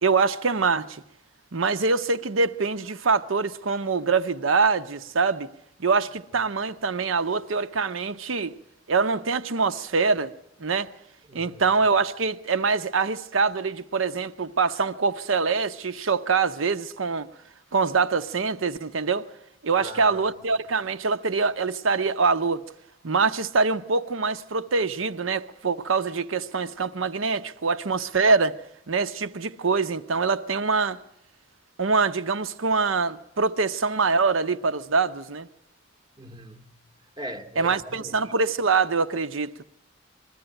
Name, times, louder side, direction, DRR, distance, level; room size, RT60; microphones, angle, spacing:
voice 1, 0.0-1.0 1.5-5.5 5.8-8.6 8.9-10.3 10.6-10.9 11.3-17.3 17.7-19.3 19.6-22.6 23.0-28.5 28.9-31.0 31.8-35.5 37.6-39.6, right 4 dB, 85° right, 0.8 m, -24 dB
voice 2, 11.3-11.8 19.8-20.3 36.2-36.8 37.2-38.3, equal, 20° right, 0.8 m, -41 dB
21.5 x 13.5 x 9.0 m
head